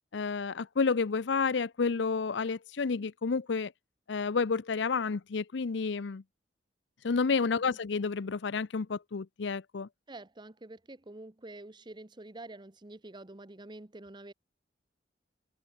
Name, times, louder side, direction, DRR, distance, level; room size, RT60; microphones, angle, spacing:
voice 1, 0.1-3.7 4.1-6.2 7.0-9.9, left 4 dB, 70° left, 0.6 m, -30 dB
voice 2, 10.1-14.3, right 2 dB, 25° right, 1.0 m, -47 dB
head